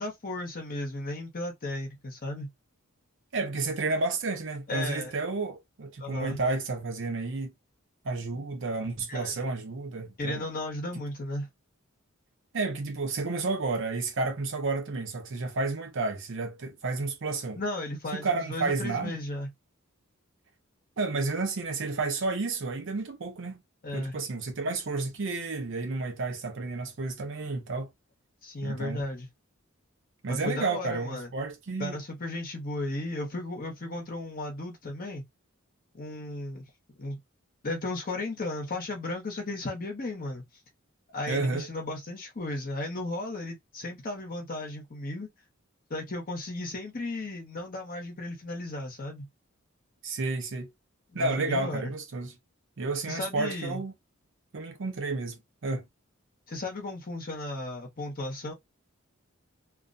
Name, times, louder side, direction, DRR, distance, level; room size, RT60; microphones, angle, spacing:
voice 1, 0.0-2.5 4.7-5.1 6.0-6.4 9.1-9.4 10.2-11.5 17.5-19.5 23.8-24.2 28.4-29.3 30.3-31.3 31.8-35.2 35.9-36.7 37.0-37.2 37.6-40.4 41.1-45.3 45.9-49.3 51.1-51.9 53.1-53.8 56.5-58.5, left 2 dB, 45° left, 0.8 m, -35 dB
voice 2, 3.3-7.5 8.0-10.5 12.5-17.6 18.1-19.2 21.0-23.6 23.9-27.9 28.6-29.0 30.2-32.0 41.3-41.7 50.0-50.7 51.1-52.3 52.8-53.9 54.5-55.8, right 3 dB, 60° right, 0.7 m, -31 dB
2.4 x 2.1 x 2.5 m
head